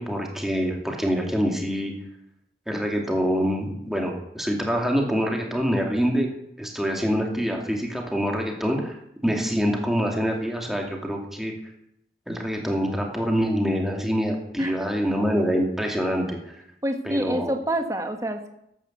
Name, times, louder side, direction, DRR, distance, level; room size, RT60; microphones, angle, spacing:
voice 1, 0.0-1.9 2.7-6.3 6.6-9.0 9.2-11.5 12.3-16.6 17.0-17.5, equal, ahead, 0 dB, 2.5 m, -25 dB
voice 2, 14.6-14.9 16.8-18.5, right 1 dB, 20° right, 5 dB, 1.6 m, -27 dB
14.0 x 11.0 x 8.0 m, 0.76 s
head